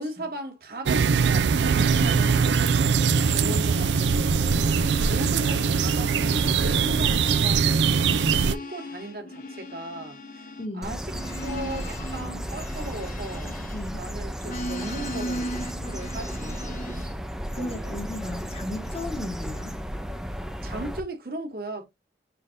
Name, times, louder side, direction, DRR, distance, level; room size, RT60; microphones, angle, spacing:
voice 1, 0.0-10.5 10.8-11.0 11.4-13.6 13.9-16.8 17.5-17.9 20.6-21.9, right 1 dB, 55° right, 1.4 m, -37 dB
sound 1, 0.9-8.6, right 5 dB, 85° right, 0.5 m, -22 dB
sound 2, 1.5-4.3 4.6-14.0 14.4-17.2 17.8-19.1, left 1 dB, 50° left, 0.9 m, -39 dB
voice 2, 10.6-11.0 13.7-14.1 17.5-19.8, left 1 dB, 35° left, 1.1 m, -35 dB
sound 3, 10.8-21.0, equal, 5° right, 0.5 m, -34 dB
5.7 x 3.3 x 2.6 m
head